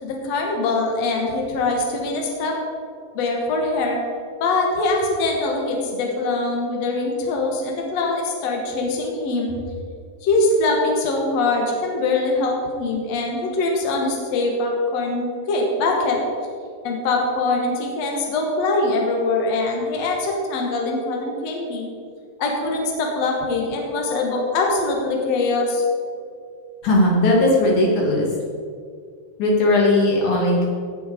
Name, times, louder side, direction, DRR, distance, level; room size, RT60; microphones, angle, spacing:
voice 1, 0.0-2.6 3.1-4.0 4.4-9.5 10.2-16.2 16.8-21.9 22.4-25.8, left 2 dB, 75° left, 0 dB, 1.5 m, -23 dB
voice 2, 26.8-28.3 29.4-30.7, left 1 dB, 50° left, -3 dB, 3.1 m, -17 dB
17.0 x 6.4 x 5.1 m, 2.2 s
omnidirectional pair, 5.3 m